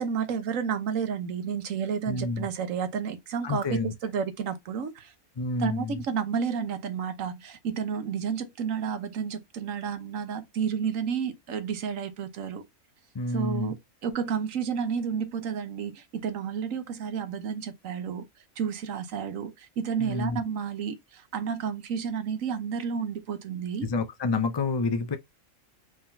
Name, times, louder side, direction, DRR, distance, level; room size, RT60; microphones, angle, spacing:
voice 1, 0.0-5.1 5.6-12.6 13.3-13.8 14.0-18.2 18.6-23.9, right 7 dB, 75° right, 1.3 m, -31 dB
voice 2, 2.1-2.5 3.4-3.9 5.4-6.0 13.1-13.7 20.0-20.4 23.8-25.2, left 3 dB, 45° left, 0.3 m, -28 dB
4.7 x 3.8 x 2.7 m
omnidirectional pair, 1.4 m